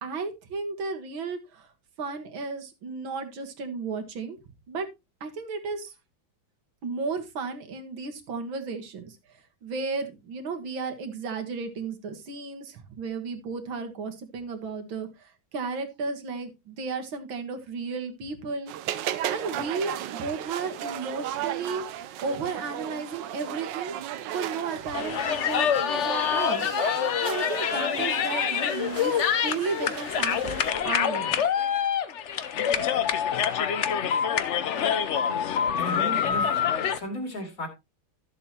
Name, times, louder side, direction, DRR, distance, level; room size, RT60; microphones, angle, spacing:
voice 1, 0.0-1.7 2.0-4.4 4.7-4.9 5.2-5.9 6.8-9.2 9.6-18.7 19.3-21.9 22.2-24.0 24.3-26.7 27.2-31.5, right 4 dB, 90° right, 6 dB, 2.3 m, -34 dB
sound 1, 18.7-30.7, right 11 dB, 75° right, 1.3 m, -35 dB
sound 2, 24.9-37.0, left 8 dB, 60° left, 0.7 m, -26 dB
voice 2, 35.8-36.6 36.9-37.7, left 1 dB, 45° left, 3 dB, 3.0 m, -34 dB
13.0 x 7.5 x 2.9 m, 0.24 s
omnidirectional pair, 2.1 m